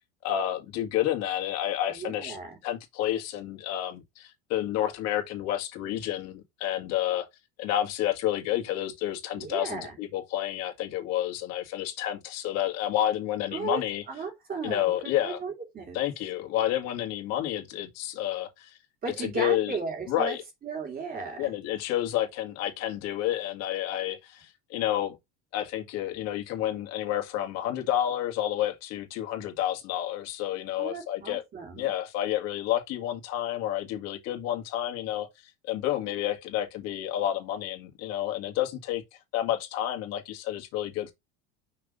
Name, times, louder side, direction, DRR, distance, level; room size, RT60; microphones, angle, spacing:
voice 1, 0.2-2.4 2.6-7.3 7.6-14.0 14.6-15.4 15.9-18.8 19.2-19.8 20.1-20.4 21.4-25.2 25.5-31.4 31.8-35.3 35.6-39.0 39.3-41.1, left 12 dB, 60° left, 1.9 m, -30 dB
voice 2, 1.9-2.6 9.3-10.0 13.5-13.8 14.1-16.0 19.0-20.4 20.6-21.5 30.8-31.9, right 5 dB, 30° right, 2.2 m, -35 dB
5.8 x 3.4 x 5.3 m
cardioid pair, 145°, 29 cm